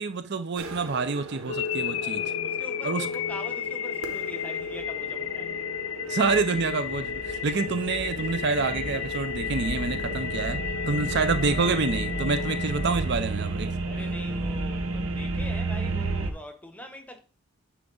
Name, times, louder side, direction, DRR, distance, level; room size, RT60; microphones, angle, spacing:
voice 1, 0.0-2.3 2.8-3.1 6.1-10.6 10.9-13.7, right 4 dB, 55° right, 0.6 m, -27 dB
sound 1, 0.6-16.3, right 2 dB, 90° right, 1.2 m, -33 dB
sound 2, 1.5-13.5, left 8 dB, 65° left, 0.4 m, -33 dB
voice 2, 2.0-5.7 13.9-17.2, left 1 dB, 5° left, 1.0 m, -43 dB
9.7 x 4.6 x 3.9 m
head